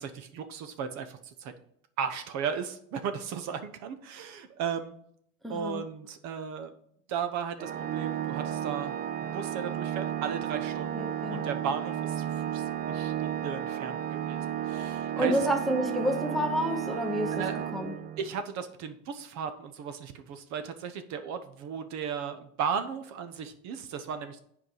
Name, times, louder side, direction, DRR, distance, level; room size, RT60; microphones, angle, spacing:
voice 1, 0.0-1.5 2.0-4.9 5.5-6.7 7.1-9.0 9.3-15.5 17.3-17.6 18.2-24.4, right 7 dB, 45° right, 9 dB, 0.9 m, -35 dB
voice 2, 5.4-5.8 10.9-11.5 15.2-17.3 17.7-17.9, equal, ahead, 4 dB, 0.8 m, -29 dB
Organ, 7.6-18.4, right 10 dB, 25° right, 0.3 m, -33 dB
7.7 x 4.8 x 5.4 m, 0.69 s
supercardioid pair, 125°, 39 cm